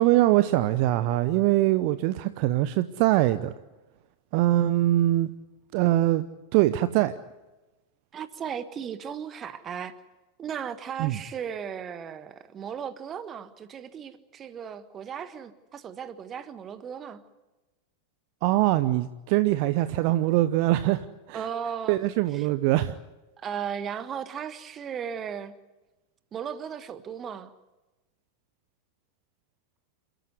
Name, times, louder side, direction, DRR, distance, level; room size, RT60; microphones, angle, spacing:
voice 1, 0.0-3.5 4.3-5.3 5.7-6.2 6.5-7.1 11.0-11.2 18.4-21.5 21.9-23.0, right 15 dB, 45° right, 13 dB, 0.8 m, -23 dB
voice 2, 8.1-9.9 10.4-17.2 21.3-22.0 22.3-22.5 23.4-25.5 26.3-27.5, right 8 dB, 25° right, 13 dB, 1.5 m, -36 dB
28.5 x 14.5 x 9.7 m, 1.1 s
figure-of-eight pair, 90°, 0 cm